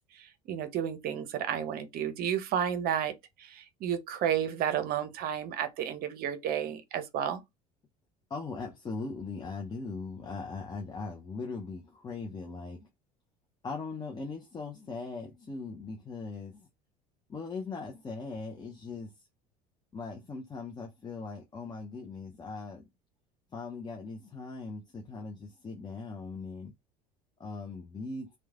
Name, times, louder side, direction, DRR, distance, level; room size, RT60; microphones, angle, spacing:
voice 1, 0.1-3.1 3.4-7.4, right 9 dB, 50° right, 0.6 m, -32 dB
voice 2, 8.3-12.9 13.6-16.7 17.3-19.1 19.9-22.8 23.5-26.7 27.4-28.3, left 4 dB, 20° left, 0.5 m, -40 dB
3.0 x 2.1 x 2.3 m
hypercardioid pair, 70°, 20 cm